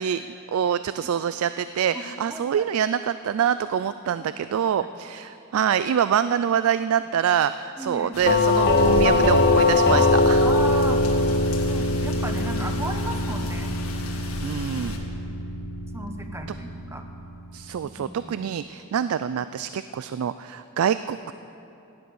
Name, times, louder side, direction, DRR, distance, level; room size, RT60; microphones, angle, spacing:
voice 1, 0.0-10.5 14.4-15.0 17.5-21.3, right 8 dB, 80° right, 13 dB, 0.3 m, -25 dB
voice 2, 2.3-2.6 4.2-4.3 4.8-4.9 7.8-8.1 9.9-10.1 10.4-11.0 11.7-13.7 15.9-17.0 17.8-18.5, right 1 dB, 15° right, 5 dB, 0.9 m, -35 dB
sound 1, 8.1-15.0, left 2 dB, 90° left, 1.7 m, -37 dB
Doorbell, 8.3-17.1, left 2 dB, 50° left, 1.0 m, -22 dB
16.0 x 10.5 x 6.4 m, 2.7 s
head